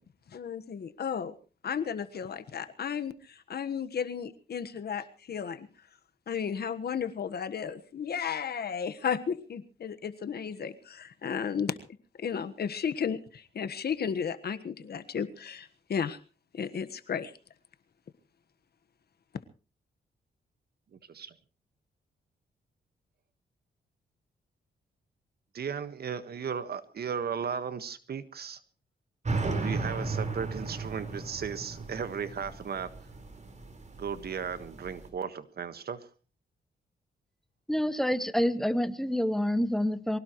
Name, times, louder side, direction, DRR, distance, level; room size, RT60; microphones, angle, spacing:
voice 1, 0.3-1.3 1.6-5.7 6.3-11.8 12.2-16.2 16.5-17.3, left 7 dB, 60° left, 11 dB, 1.4 m, -34 dB
voice 2, 25.5-28.6 29.6-32.9 34.0-36.0, right 7 dB, 60° right, 12 dB, 1.5 m, -35 dB
sound 1, 29.2-35.1, right 3 dB, 40° right, 4.6 m, -35 dB
voice 3, 37.7-40.2, equal, ahead, 11 dB, 1.5 m, -27 dB
24.0 x 17.5 x 3.1 m, 0.36 s
cardioid pair, 85°, 18 cm